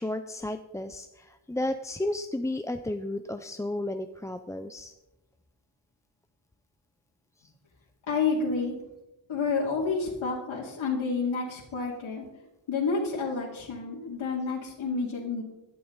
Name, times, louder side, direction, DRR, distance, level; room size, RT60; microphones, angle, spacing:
voice 1, 0.0-4.9 7.4-7.5, left 1 dB, 5° left, 8 dB, 0.4 m, -33 dB
voice 2, 8.1-8.8 9.3-12.3 12.7-15.4, left 4 dB, 75° left, -4 dB, 2.6 m, -29 dB
16.0 x 12.0 x 3.9 m, 0.98 s
wide cardioid pair, 170°, 47 cm